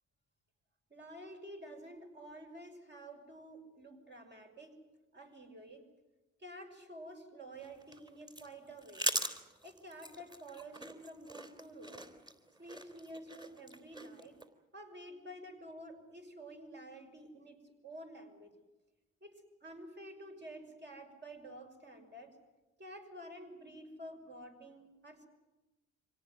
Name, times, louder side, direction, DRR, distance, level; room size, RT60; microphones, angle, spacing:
voice 1, 0.9-4.7 5.1-5.9 6.4-9.1 9.6-12.1 12.6-14.4 14.7-18.5 19.2-22.4 22.8-25.3, right 1 dB, 35° right, 4 dB, 6.2 m, -50 dB
sound 1, 7.5-14.5, right 1 dB, 15° right, 3.6 m, -42 dB
26.0 x 17.5 x 9.4 m, 1.1 s
cardioid pair, 90°, 30 cm